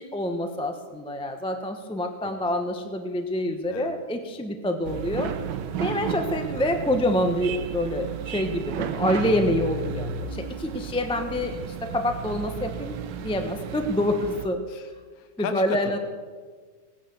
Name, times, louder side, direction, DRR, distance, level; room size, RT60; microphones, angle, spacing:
voice 1, 0.0-5.3 5.8-14.6 15.4-16.0, left 1 dB, 5° left, 5 dB, 0.7 m, -27 dB
voice 2, 3.7-4.0 14.7-14.9 15.2-16.0, left 6 dB, 55° left, 8 dB, 1.4 m, -35 dB
sound 1, 4.8-14.5, right 7 dB, 75° right, 1.5 m, -33 dB
18.0 x 9.8 x 7.0 m, 1.5 s
omnidirectional pair, 2.0 m